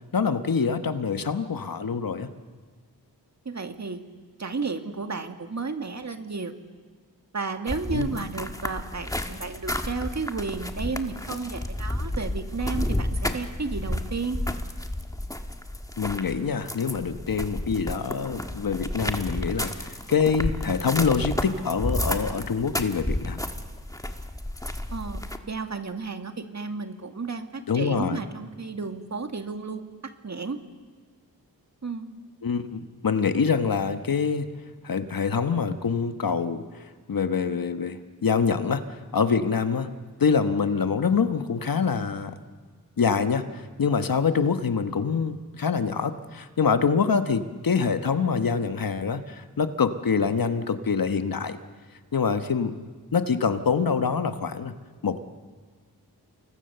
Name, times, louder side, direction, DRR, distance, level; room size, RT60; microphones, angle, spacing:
voice 1, 0.1-2.3 7.9-8.3 16.0-23.4 27.7-28.2 32.4-34.5 34.8-39.9 40.2-42.4 43.0-51.6 52.1-52.8 53.1-54.7 55.0-55.2, left 5 dB, 60° left, 9 dB, 1.3 m, -25 dB
voice 2, 3.5-4.0 4.4-6.5 7.3-14.4 24.9-29.9 30.2-30.6 31.8-32.2, right 4 dB, 45° right, 6 dB, 2.0 m, -32 dB
sound 1, 7.7-25.4, left 1 dB, 10° left, 1.6 m, -31 dB
29.0 x 22.0 x 6.9 m, 1.5 s
wide cardioid pair, 65°, 38 cm